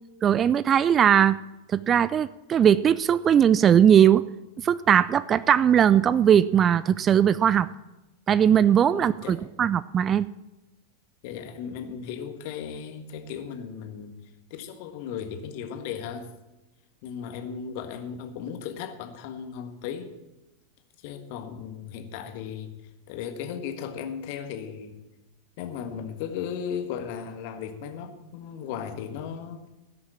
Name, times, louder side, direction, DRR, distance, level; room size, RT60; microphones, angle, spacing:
voice 1, 0.2-1.4 1.7-4.2 4.6-7.7 8.3-10.3, right 9 dB, 25° right, 17 dB, 0.3 m, -19 dB
voice 2, 8.9-9.4 11.2-14.2 14.5-16.3 17.0-20.1 21.0-22.7 23.1-25.0 25.6-29.6, left 7 dB, 45° left, 7 dB, 1.5 m, -36 dB
16.5 x 6.5 x 7.5 m, 1.0 s
figure-of-eight pair, 90°, 0 cm